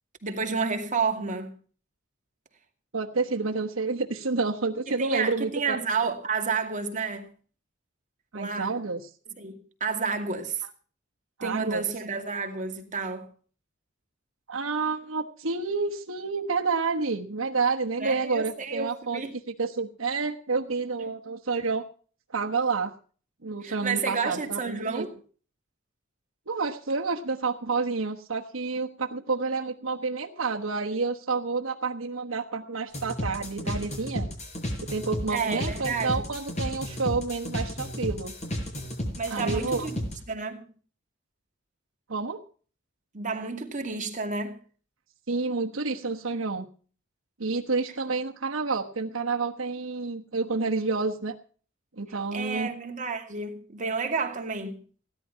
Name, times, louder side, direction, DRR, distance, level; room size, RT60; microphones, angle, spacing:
voice 1, 0.2-1.6 4.9-7.3 8.3-8.7 9.4-10.6 11.4-13.3 18.0-19.4 21.0-21.1 23.6-25.1 35.3-36.2 39.2-40.0 40.3-40.6 43.1-44.6 52.3-54.8, right 4 dB, 40° right, 2.5 m, -30 dB
voice 2, 2.9-5.8 8.3-9.0 11.4-11.8 14.5-19.2 19.6-21.8 22.3-22.9 23.4-25.1 26.5-34.3 34.8-38.3 39.3-39.9 42.1-42.4 45.3-46.7 47.4-51.3 52.0-52.7, right 4 dB, 80° right, 1.3 m, -29 dB
sound 1, 32.9-40.1, equal, 35° left, 5.4 m, -33 dB
17.0 x 11.0 x 5.6 m
head